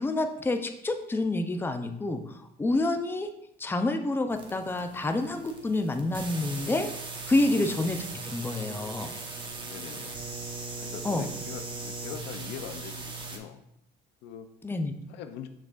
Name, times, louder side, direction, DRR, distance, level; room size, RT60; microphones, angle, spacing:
voice 1, 0.0-3.3 3.6-6.9 7.3-9.1 11.0-11.3 14.6-14.9, left 2 dB, 15° left, 6 dB, 0.5 m, -28 dB
sound 1, 4.3-13.4, right 3 dB, 30° right, 1.0 m, -39 dB
voice 2, 9.6-10.2 10.8-13.6 14.2-14.5 15.1-15.5, left 9 dB, 85° left, 8 dB, 0.6 m, -42 dB
6.4 x 6.0 x 2.4 m, 0.77 s
cardioid pair, 110°, 17 cm